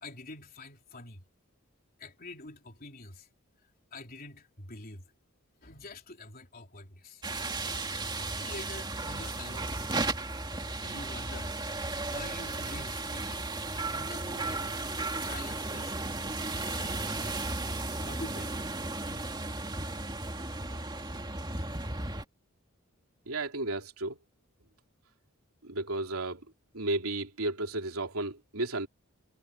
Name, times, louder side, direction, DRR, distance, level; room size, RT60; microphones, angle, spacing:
voice 1, 0.0-1.2 2.0-3.3 3.9-5.0 5.6-7.2 8.4-9.8 10.7-13.4 13.7-14.7 15.1-16.0 16.4-17.5 17.9-18.6, left 2 dB, 45° left, 3.8 m, -46 dB
sound 1, 7.2-22.2, right 2 dB, 20° right, 2.4 m, -35 dB
voice 2, 23.3-24.2 25.6-26.4 26.7-28.9, right 2 dB, 90° right, 3.0 m, -33 dB
head